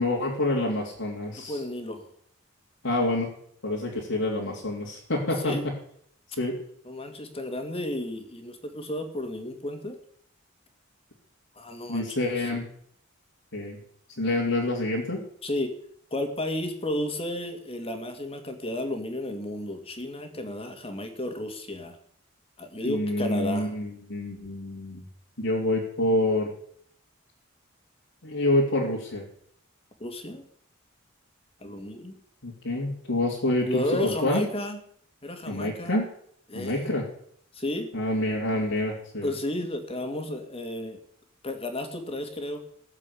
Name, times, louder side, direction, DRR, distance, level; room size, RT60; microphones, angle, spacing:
voice 1, 0.0-1.6 2.8-3.3 3.6-5.7 6.4-6.6 11.9-12.6 13.5-13.8 14.2-15.2 22.8-25.0 25.4-26.5 28.2-29.2 32.4-33.8 34.2-34.4 35.5-36.1 36.5-37.1 37.9-39.3, left 1 dB, 75° left, -4 dB, 3.1 m, -27 dB
voice 2, 1.4-2.1 5.4-5.6 6.8-10.0 11.6-12.5 15.4-15.7 16.1-22.0 22.6-23.7 30.0-30.4 31.6-32.2 33.5-34.8 35.2-36.0 36.5-36.9 37.5-37.9 39.2-41.0 41.4-42.6, left 1 dB, 30° left, 5 dB, 2.4 m, -32 dB
18.0 x 7.5 x 8.5 m, 0.65 s
head